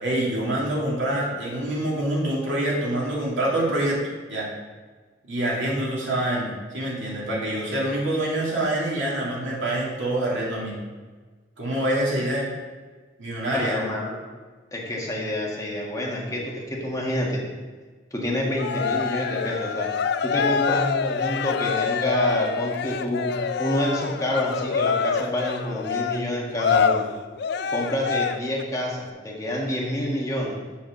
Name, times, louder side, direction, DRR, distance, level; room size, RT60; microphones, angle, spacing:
voice 1, 0.0-4.0 4.3-4.5 5.3-10.8 11.6-12.5 13.2-13.9, right 1 dB, 90° right, -5 dB, 2.6 m, -26 dB
voice 2, 13.5-14.2 14.7-17.4 18.1-19.9 20.2-23.3 23.6-27.1 27.7-30.5, left 1 dB, 20° left, -3 dB, 1.5 m, -27 dB
Cheering, 18.6-28.6, left 6 dB, 60° left, 0.4 m, -26 dB
7.1 x 4.4 x 6.7 m, 1.4 s
head